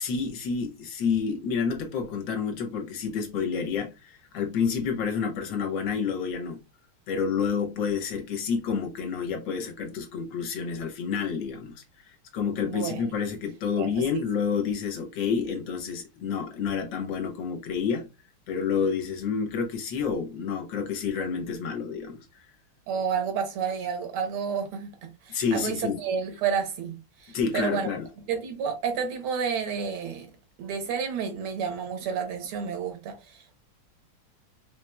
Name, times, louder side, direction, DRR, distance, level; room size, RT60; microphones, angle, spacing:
voice 1, 0.0-6.6 7.1-18.1 18.5-22.5 25.3-26.0 27.3-28.1, left 6 dB, 70° left, 1.4 m, -29 dB
voice 2, 12.6-13.0 13.8-13.9 22.9-27.9 28.3-30.3 30.6-33.6, right 6 dB, 85° right, 1.8 m, -30 dB
4.6 x 2.9 x 2.2 m
omnidirectional pair, 2.3 m